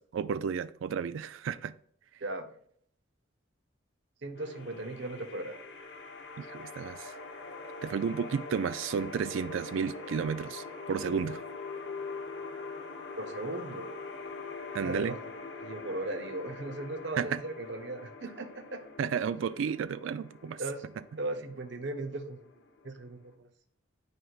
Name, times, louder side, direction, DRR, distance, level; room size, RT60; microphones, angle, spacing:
voice 1, 0.0-1.7 6.4-7.2 7.8-11.4 14.7-15.1 17.2-17.4 19.0-20.6, right 6 dB, 75° right, 0.3 m, -32 dB
voice 2, 4.2-5.5 13.2-13.9 14.8-15.2 15.6-18.8 20.6-20.8 21.2-22.4 22.8-23.5, right 2 dB, 60° right, 0.8 m, -37 dB
sound 1, 4.3-23.3, left 3 dB, 65° left, 1.1 m, -44 dB
9.2 x 4.7 x 2.4 m
head